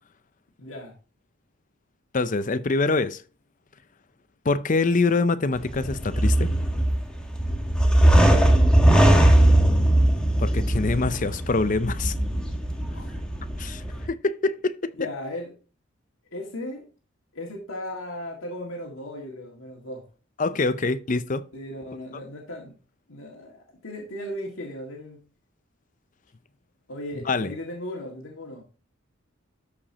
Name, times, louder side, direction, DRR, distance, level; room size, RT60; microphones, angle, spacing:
voice 1, 0.6-1.0 12.9-13.1 15.0-15.5 16.3-16.9 17.3-20.0 20.5-20.7 21.5-22.8 23.1-25.2 26.9-28.6, left 1 dB, 85° left, 1.9 m, -37 dB
voice 2, 2.1-3.2 4.4-6.5 10.4-12.1 13.6-14.9 20.4-21.4 27.3-27.5, left 3 dB, 40° left, 0.5 m, -25 dB
sound 1, 5.5-14.1, right 1 dB, 5° left, 1.2 m, -20 dB
12.5 x 5.0 x 2.8 m
head